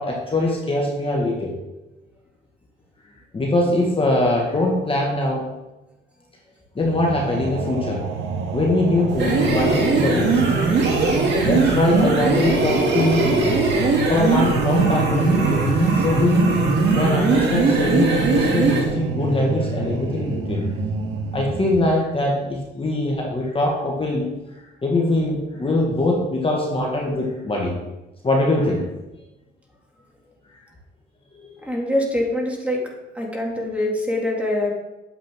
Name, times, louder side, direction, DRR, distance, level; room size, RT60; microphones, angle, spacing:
voice 1, 0.0-1.6 3.3-5.5 6.7-8.1 8.5-10.4 11.4-13.6 14.1-16.6 16.9-20.7 21.3-24.3 24.8-27.8 28.2-28.9 31.4-31.5, left 2 dB, 25° left, -1 dB, 1.7 m, -22 dB
sound 1, 6.8-21.8, right 5 dB, 85° right, 1.0 m, -28 dB
sound 2, 9.1-18.9, right 3 dB, 60° right, 2.4 m, -20 dB
voice 2, 31.7-32.8 33.2-34.7, left 1 dB, 5° right, -1 dB, 2.4 m, -24 dB
9.0 x 7.5 x 3.6 m, 1.0 s
cardioid pair, 90°, 20 cm